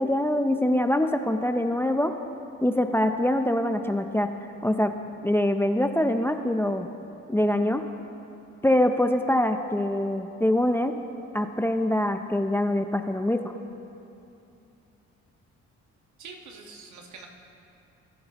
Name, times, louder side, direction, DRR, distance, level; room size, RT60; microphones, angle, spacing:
voice 1, 0.0-2.1 2.6-4.3 4.6-4.9 5.2-6.9 7.3-7.8 8.6-10.9 11.3-13.5, left 1 dB, 10° left, 7 dB, 0.5 m, -24 dB
voice 2, 16.2-17.3, right 4 dB, 70° right, 2 dB, 1.5 m, -44 dB
20.5 x 10.0 x 3.0 m, 2.8 s
cardioid pair, 90°, 30 cm